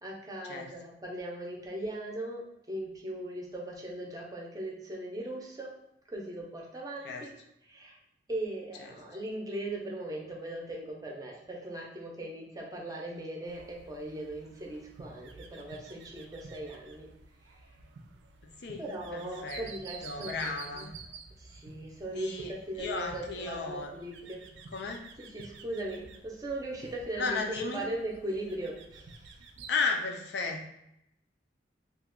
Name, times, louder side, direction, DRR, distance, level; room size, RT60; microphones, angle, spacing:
voice 1, 0.0-5.7 6.1-7.3 7.7-8.0 8.3-17.1 17.4-17.6 18.8-20.9 21.4-24.5 25.2-29.4, right 1 dB, 20° right, -1 dB, 0.6 m, -39 dB
sound 1, 13.5-29.7, right 4 dB, 75° right, 0.3 m, -51 dB
voice 2, 19.1-19.7 20.0-20.9 22.1-23.9 24.7-25.0 27.2-27.9 29.7-30.7, left 4 dB, 65° left, 2 dB, 0.5 m, -34 dB
2.8 x 2.3 x 3.6 m, 0.79 s
head